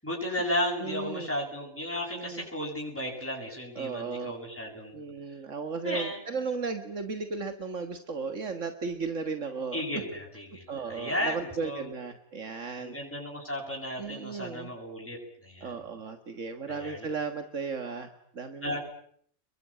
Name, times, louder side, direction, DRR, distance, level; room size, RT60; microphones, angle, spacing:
voice 1, 0.0-5.0 5.8-6.2 9.7-11.9 12.8-15.7 16.7-17.1 18.6-18.8, left 1 dB, 10° left, -2 dB, 7.8 m, -34 dB
voice 2, 0.8-1.3 2.1-2.4 3.8-4.3 4.9-9.8 10.7-13.0 14.0-14.7 15.6-18.8, right 4 dB, 80° right, 8 dB, 2.1 m, -35 dB
29.5 x 22.5 x 8.8 m, 0.65 s
omnidirectional pair, 1.3 m